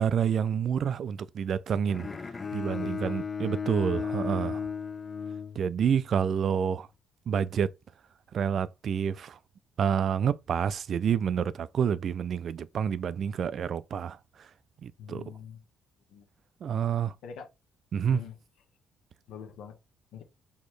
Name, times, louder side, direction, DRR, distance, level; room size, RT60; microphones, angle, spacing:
voice 1, 0.0-2.1 2.5-4.7 5.6-6.9 7.3-7.7 8.3-9.4 9.8-14.5 14.8-15.2 16.6-17.1 17.9-18.2, right 7 dB, 55° right, 0.3 m, -28 dB
Bowed string instrument, 1.9-6.1, left 6 dB, 30° left, 0.5 m, -35 dB
voice 2, 2.7-3.2 15.0-15.6 16.1-16.2 17.2-17.5 18.1-18.3 19.3-19.8 20.1-20.2, left 7 dB, 80° left, 1.1 m, -43 dB
4.2 x 2.9 x 3.2 m
cardioid pair, 100°, 0 cm